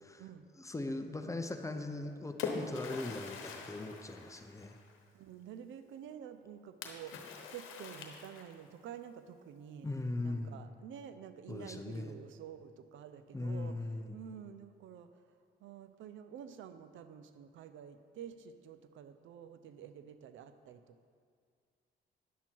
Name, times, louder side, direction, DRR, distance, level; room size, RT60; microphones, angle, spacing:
voice 1, 0.6-4.7 9.8-10.6 11.5-12.2 13.3-14.2, left 2 dB, 15° left, 6 dB, 0.7 m, -39 dB
Splash splatter, 1.8-5.0 6.8-8.7, left 5 dB, 90° left, 1.0 m, -43 dB
voice 2, 5.1-9.9 10.2-21.1, right 8 dB, 75° right, 10 dB, 0.6 m, -49 dB
10.0 x 7.1 x 4.5 m, 2.2 s
cardioid pair, 90°, 20 cm